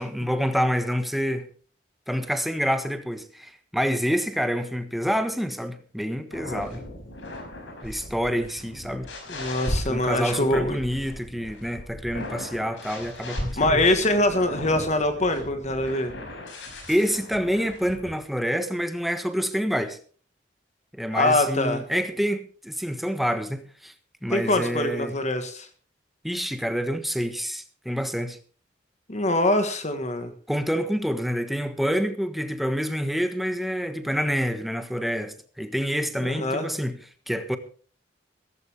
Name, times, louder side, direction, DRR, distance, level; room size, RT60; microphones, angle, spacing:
voice 1, 0.0-1.5 2.1-6.8 7.8-9.1 9.7-13.9 16.9-20.0 20.9-23.9 24.2-25.1 26.2-28.4 30.5-37.0 37.3-37.6, equal, ahead, 1.4 m, -27 dB
sound 1, 6.3-18.2, left 1 dB, 90° left, 5.3 m, -37 dB
voice 2, 9.3-10.8 13.6-16.1 21.1-21.8 24.3-25.7 29.1-30.3 36.3-36.7, left 1 dB, 40° left, 1.6 m, -23 dB
16.5 x 14.5 x 3.5 m
head